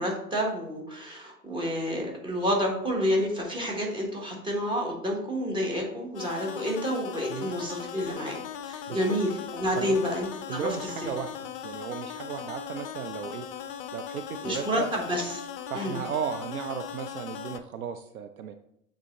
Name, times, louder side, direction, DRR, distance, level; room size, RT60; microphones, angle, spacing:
voice 1, 0.0-8.4 8.6-11.1 14.4-15.4 15.7-16.0, equal, 10° right, -1 dB, 1.4 m, -29 dB
sound 1, 6.1-17.6, left 9 dB, 40° left, 0.5 m, -39 dB
voice 2, 9.7-10.1 10.5-11.3 11.6-13.5 13.9-14.9 15.7-18.5, right 8 dB, 65° right, 8 dB, 0.6 m, -35 dB
7.2 x 3.6 x 3.8 m, 0.74 s
figure-of-eight pair, 100°, 48 cm